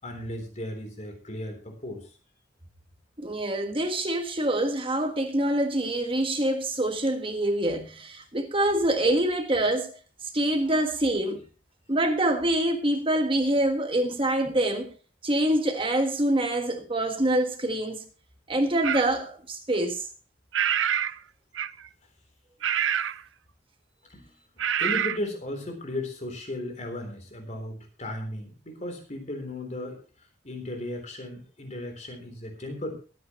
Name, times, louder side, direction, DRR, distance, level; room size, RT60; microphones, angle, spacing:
voice 1, 0.0-2.1 24.1-24.3 24.8-30.0 30.4-32.9, left 1 dB, 40° left, 3.7 m, -35 dB
voice 2, 3.2-9.9 10.3-11.4 11.9-14.9 15.2-18.0 18.5-20.0, right 1 dB, 30° right, 1.4 m, -25 dB
sound 1, 18.8-19.1 20.5-21.2 21.5-21.9 22.6-23.2 24.6-25.2, right 9 dB, 90° right, 0.6 m, -26 dB
22.5 x 9.5 x 3.1 m
head